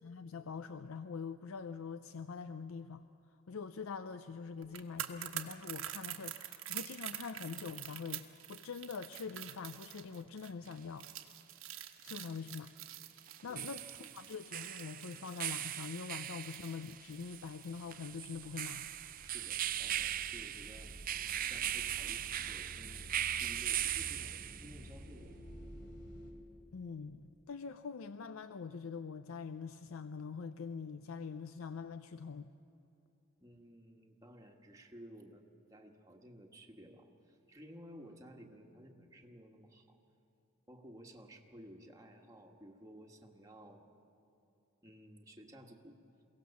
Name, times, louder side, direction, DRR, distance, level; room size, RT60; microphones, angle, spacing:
voice 1, 0.0-3.1 3.5-11.1 12.0-12.7 13.4-18.9 26.7-32.5, left 5 dB, 85° left, 11 dB, 0.5 m, -44 dB
sound 1, 4.6-17.8 18.1-18.2, right 12 dB, 80° right, 1.2 m, -46 dB
sound 2, 10.7-10.8 13.3-24.9, right 11 dB, 40° right, 0.5 m, -39 dB
sound 3, 17.7-26.3, equal, 55° left, 3.1 m, -52 dB
voice 2, 19.2-25.5 33.4-35.4 35.7-40.0 40.7-43.9 44.8-46.0, equal, 15° right, 1 dB, 1.4 m, -55 dB
23.0 x 17.0 x 7.0 m, 2.7 s
head